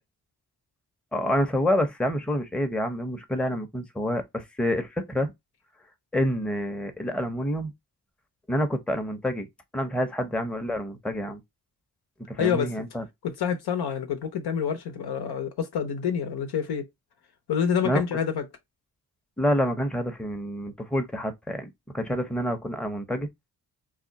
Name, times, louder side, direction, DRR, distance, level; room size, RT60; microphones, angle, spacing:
voice 1, 1.1-5.3 6.1-7.7 8.5-9.5 9.7-11.4 12.3-13.0 17.8-18.0 19.4-23.3, equal, 5° left, 0.6 m, -27 dB
voice 2, 12.4-12.7 13.2-16.9 17.5-18.4, left 7 dB, 80° left, 0.8 m, -27 dB
2.4 x 2.2 x 3.8 m
cardioid pair, 60°, 38 cm